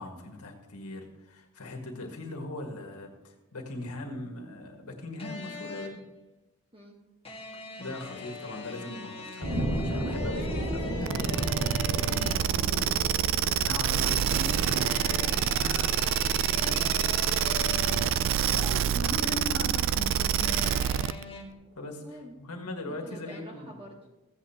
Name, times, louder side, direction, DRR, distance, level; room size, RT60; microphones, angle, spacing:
voice 1, 0.0-6.0 7.8-17.0 18.5-21.1 21.8-22.0 22.4-23.8, left 2 dB, 85° left, 2 dB, 1.7 m, -40 dB
sound 1, 5.2-6.1 7.2-12.6 14.1-18.4 20.4-21.4, left 3 dB, 25° left, 1.7 m, -42 dB
sound 2, 9.4-20.4 20.9-21.0, equal, 80° right, 2.0 m, -36 dB
sound 3, 11.1-21.2, right 10 dB, 60° right, 0.3 m, -26 dB
voice 2, 14.6-15.5 15.9-18.5 22.0-22.3 22.8-24.0, right 1 dB, 25° right, -1 dB, 1.2 m, -48 dB
15.0 x 8.5 x 2.9 m, 1.0 s
head